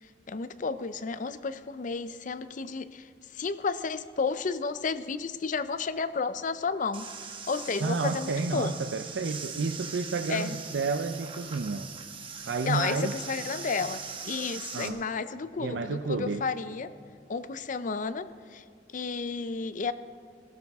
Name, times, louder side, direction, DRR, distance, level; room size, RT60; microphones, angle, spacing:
voice 1, 0.0-7.1 7.5-8.7 10.3-10.6 12.6-16.9 17.3-19.9, left 4 dB, 45° left, 13 dB, 0.5 m, -32 dB
sound 1, 6.9-14.9, right 6 dB, 30° right, 1.2 m, -41 dB
voice 2, 7.8-11.9 12.5-13.1 14.7-15.0 15.6-16.4, right 4 dB, 80° right, 6 dB, 0.5 m, -30 dB
21.5 x 12.5 x 3.5 m, 2.1 s
head